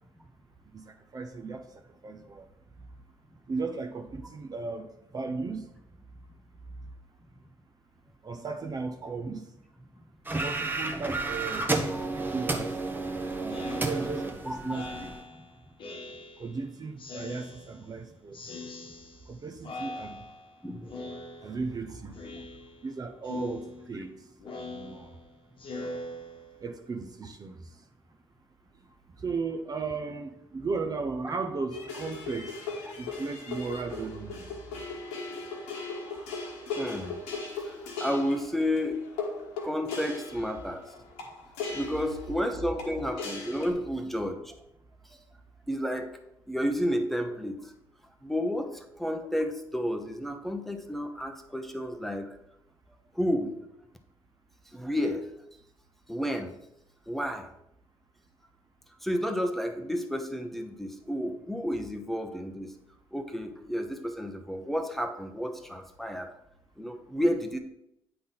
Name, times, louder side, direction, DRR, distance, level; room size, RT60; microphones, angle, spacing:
voice 1, 0.7-2.5 3.5-5.7 8.2-9.6 10.4-11.7 12.1-12.8 13.4-15.1 16.4-18.4 19.3-20.3 21.4-22.5 22.8-24.3 24.7-25.2 26.6-27.9 28.7-32.6 33.0-34.5, right 4 dB, 35° right, 6 dB, 0.7 m, -36 dB
sound 1, 10.3-15.2, right 3 dB, 15° right, 1.0 m, -31 dB
Speech synthesizer, 13.5-16.6 17.0-18.0 18.3-19.4 19.6-20.6 20.9-21.8 22.1-22.9 23.2-26.8, left 2 dB, 50° left, 1.2 m, -42 dB
voice 2, 20.6-21.0 36.8-37.2 37.6-39.0 39.6-40.8 41.7-44.5 45.1-45.2 45.7-46.2 46.5-47.7 48.2-52.4 53.1-53.5 54.7-55.3 56.1-56.5 57.1-57.5 59.0-62.7 63.1-66.3 66.8-67.6, equal, ahead, 5 dB, 0.8 m, -31 dB
sound 2, 31.7-43.7, left 3 dB, 80° left, 1.2 m, -38 dB
8.7 x 3.9 x 3.9 m, 0.82 s
hypercardioid pair, 55°, 11 cm